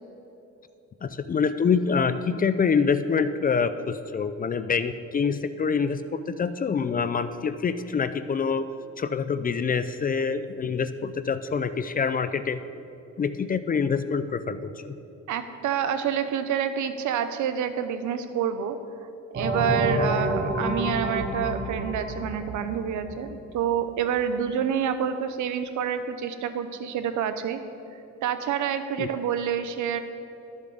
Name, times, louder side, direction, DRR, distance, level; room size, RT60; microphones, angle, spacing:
voice 1, 1.0-8.6 9.0-12.6 13.2-14.9 29.0-29.1, left 5 dB, 30° left, 12 dB, 0.4 m, -26 dB
voice 2, 15.3-18.8 19.3-27.6 28.2-30.0, right 8 dB, 75° right, 10 dB, 0.7 m, -28 dB
sound 1, 19.3-23.7, right 1 dB, 40° right, 1.6 m, -29 dB
12.5 x 7.2 x 3.9 m, 2.9 s
cardioid pair, 90°, 30 cm